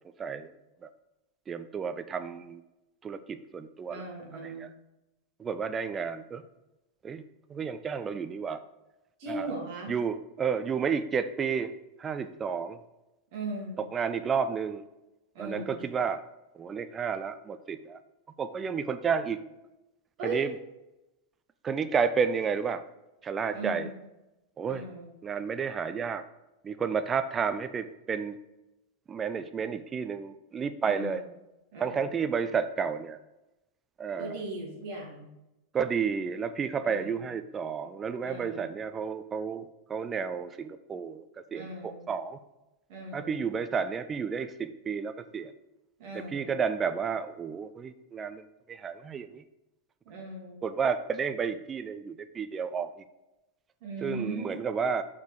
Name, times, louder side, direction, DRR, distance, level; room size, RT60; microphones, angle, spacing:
voice 1, 0.2-0.5 0.8-0.9 1.5-2.6 3.0-4.0 4.4-4.7 5.4-6.4 7.0-7.2 7.5-8.6 9.3-9.5 9.9-11.7 12.0-12.8 13.8-14.8 15.4-16.2 16.5-18.0 18.4-19.4 20.2-20.5 21.6-22.8 23.2-23.9 24.6-24.8 25.2-26.2 26.6-28.4 29.1-31.2 31.8-33.2 34.0-34.4 35.7-41.2 41.5-42.4 43.1-45.5 46.1-48.4 48.7-49.4 50.6-52.9 54.0-55.0, right 6 dB, 20° right, 11 dB, 0.4 m, -31 dB
voice 2, 3.9-4.6 9.2-9.9 13.3-13.8 15.3-15.8 20.2-20.4 23.5-24.0 24.6-25.1 30.8-31.3 31.7-32.1 34.2-35.3 36.8-37.2 38.2-38.7 41.5-42.1 42.9-43.4 46.0-46.5 50.0-50.6 53.8-54.5, right 2 dB, 45° right, -2 dB, 2.4 m, -38 dB
6.7 x 4.8 x 4.6 m, 0.95 s
figure-of-eight pair, 90°, 0 cm